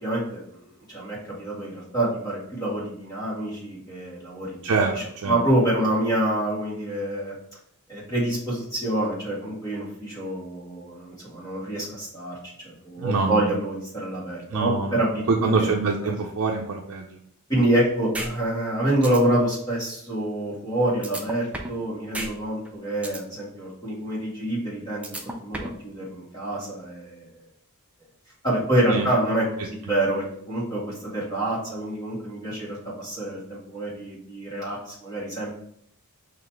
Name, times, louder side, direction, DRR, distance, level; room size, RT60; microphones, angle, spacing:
voice 1, 0.0-0.4 0.9-4.6 5.3-7.3 7.9-12.4 12.6-15.7 16.0-16.1 17.5-27.3 28.4-35.5, right 1 dB, 20° left, -7 dB, 1.9 m, -27 dB
voice 2, 4.6-5.4 13.0-13.5 14.5-17.2 28.9-29.0, right 4 dB, 75° right, 0 dB, 0.5 m, -25 dB
sound 1, 18.1-18.3 18.7-18.8 19.0-19.2 21.0-21.8 22.1-22.3 22.6-23.2 25.0-25.8, right 1 dB, 5° right, 0.4 m, -32 dB
4.0 x 2.9 x 4.5 m, 0.68 s
head